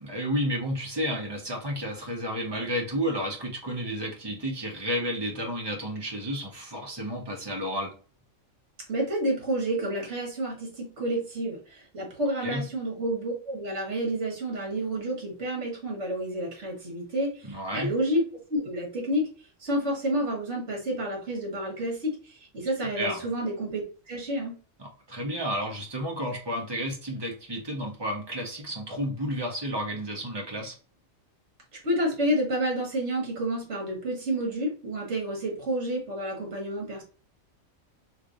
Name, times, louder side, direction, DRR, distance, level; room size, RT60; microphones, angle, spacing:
voice 1, 0.0-7.9 12.4-12.6 17.4-17.9 22.9-23.2 24.8-30.7, equal, 20° right, -1 dB, 1.0 m, -31 dB
voice 2, 8.9-18.2 18.5-19.3 19.6-24.5 31.8-37.0, right 1 dB, 60° right, -1 dB, 1.7 m, -29 dB
3.3 x 3.2 x 2.5 m, 0.38 s
omnidirectional pair, 1.4 m